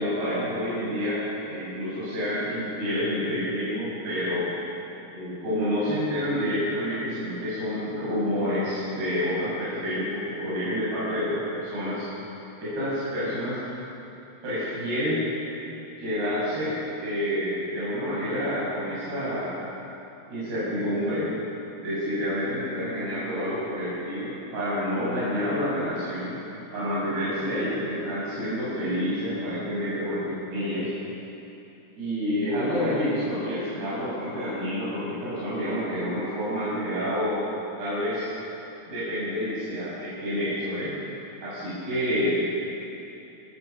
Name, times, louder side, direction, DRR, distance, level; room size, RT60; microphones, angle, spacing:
voice 1, 0.0-4.5 5.1-12.0 12.6-13.6 14.4-15.2 16.0-19.6 20.3-21.3 21.8-26.4 26.7-30.9 32.0-37.4 37.8-38.3 38.9-40.9 41.4-42.4, equal, 75° right, -11 dB, 8.9 m, -28 dB
26.5 x 19.0 x 7.0 m, 2.9 s
omnidirectional pair, 4.6 m